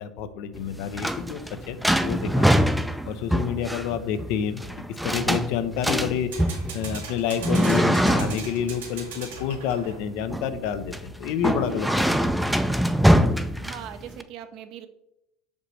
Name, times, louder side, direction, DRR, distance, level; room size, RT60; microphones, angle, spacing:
voice 1, 0.0-1.4 1.7-2.5 3.1-4.6 5.0-6.3 6.7-12.3, left 8 dB, 65° left, 10 dB, 0.6 m, -29 dB
sound 1, 0.6-14.2, equal, 5° right, 0.5 m, -24 dB
sound 2, 0.8-1.3 6.1-10.2, right 5 dB, 80° right, 1.5 m, -40 dB
voice 2, 11.7-12.0 13.6-14.9, right 9 dB, 60° right, 9 dB, 0.7 m, -40 dB
6.0 x 5.2 x 3.2 m, 0.84 s
hypercardioid pair, 80°, 0 cm